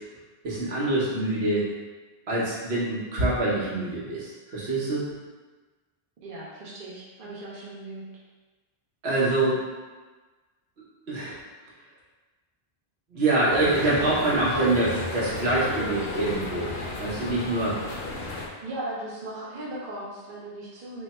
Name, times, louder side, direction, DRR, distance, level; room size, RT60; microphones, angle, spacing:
voice 1, 0.4-1.6 2.3-5.1 9.0-9.6 11.1-11.3 13.1-16.7 17.0-17.9, right 2 dB, 80° right, -7 dB, 1.2 m, -25 dB
voice 2, 6.2-8.0 18.6-21.0, right 1 dB, 60° right, -6 dB, 0.9 m, -37 dB
sound 1, 13.5-18.5, left 2 dB, 70° left, 0.8 m, -34 dB
3.3 x 2.2 x 4.1 m, 1.3 s
omnidirectional pair, 1.0 m